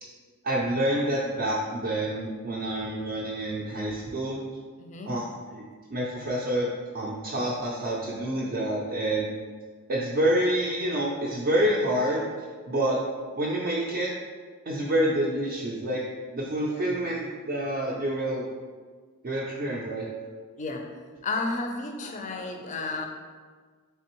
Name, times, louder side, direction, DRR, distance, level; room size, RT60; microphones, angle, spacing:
voice 1, 0.4-4.4 5.1-5.6 5.9-9.3 9.9-13.0 13.4-14.1 14.7-16.0 16.3-18.4 19.2-20.1, right 1 dB, 40° right, -5 dB, 0.4 m, -28 dB
voice 2, 4.8-5.1 16.7-17.1 20.6-20.8 21.2-23.1, left 3 dB, 35° left, 3 dB, 0.4 m, -32 dB
3.4 x 3.3 x 3.0 m, 1.5 s
head